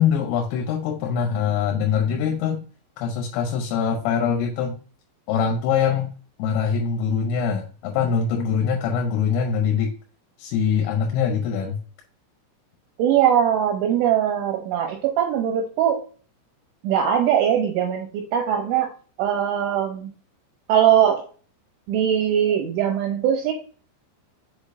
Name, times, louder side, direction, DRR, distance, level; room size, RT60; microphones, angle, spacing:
voice 1, 0.0-2.6 3.0-4.8 5.3-6.1 6.4-9.9 10.4-11.8, left 7 dB, 85° left, 2 dB, 3.5 m, -23 dB
voice 2, 13.0-16.0 16.8-18.9 19.2-20.1 20.7-21.3 21.9-23.5, right 9 dB, 80° right, 2 dB, 3.1 m, -21 dB
7.1 x 5.1 x 2.6 m, 0.39 s
omnidirectional pair, 5.8 m